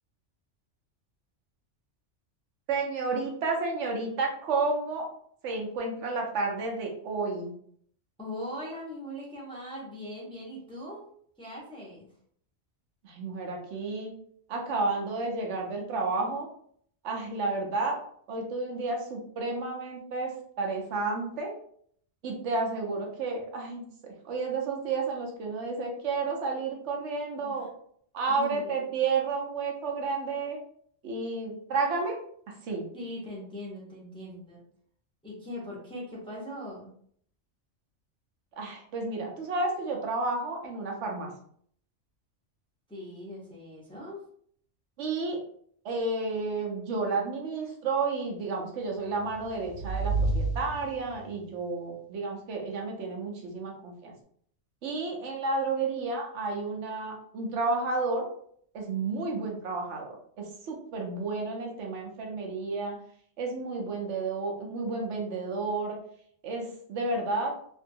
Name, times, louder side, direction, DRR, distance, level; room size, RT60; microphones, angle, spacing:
voice 1, 2.7-5.1 5.4-7.5 13.0-14.1 14.5-16.5 17.0-18.0 18.3-21.5 22.2-23.8 24.2-27.7 28.1-30.6 31.0-32.2 32.6-32.9 38.6-41.3 45.0-45.4 45.8-54.1 54.8-58.3 58.7-63.0 63.4-66.0 66.4-67.5, right 3 dB, 80° right, 0 dB, 1.0 m, -31 dB
voice 2, 8.2-11.1 11.4-12.1 27.4-27.6 28.3-28.8 32.9-34.6 35.2-36.9 42.9-44.2, left 1 dB, 5° left, -5 dB, 0.6 m, -40 dB
sound 1, 49.0-51.4, right 2 dB, 45° left, 0.8 m, -31 dB
2.6 x 2.2 x 2.6 m, 0.63 s
omnidirectional pair, 1.2 m